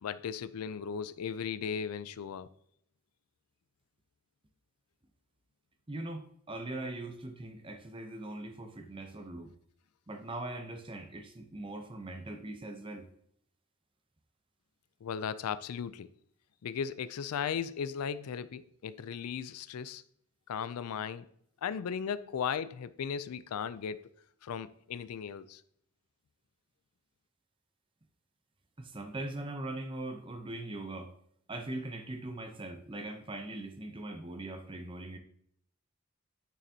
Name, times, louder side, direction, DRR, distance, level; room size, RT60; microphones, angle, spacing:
voice 1, 0.0-2.5 15.0-16.1 16.6-20.0 20.5-21.3 21.6-24.1 24.4-25.6, left 7 dB, 85° left, 0.4 m, -36 dB
voice 2, 5.9-9.5 10.1-13.1 28.8-31.1 31.5-35.2, right 2 dB, 25° right, 0.6 m, -41 dB
9.2 x 6.6 x 2.8 m
head